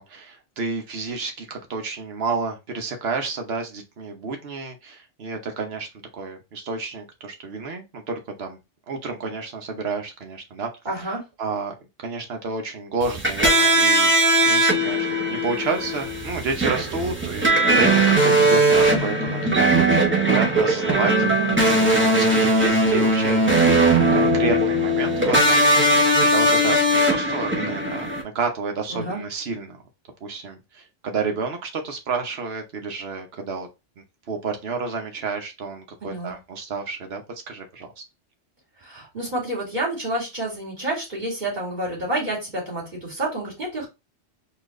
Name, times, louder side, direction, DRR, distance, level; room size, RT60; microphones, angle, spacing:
voice 1, 0.0-5.9 6.1-8.6 8.9-10.7 11.4-21.1 22.0-29.8 30.2-33.7 34.3-38.0, right 4 dB, 65° right, 4 dB, 1.1 m, -30 dB
voice 2, 10.8-11.2 18.2-18.6 21.4-21.9 28.9-29.2 36.0-36.3 38.8-43.9, right 1 dB, 40° right, -5 dB, 2.4 m, -29 dB
sound 1, 13.0-28.2, right 1 dB, 10° right, 0.7 m, -19 dB
4.4 x 2.5 x 3.1 m, 0.25 s
omnidirectional pair, 1.2 m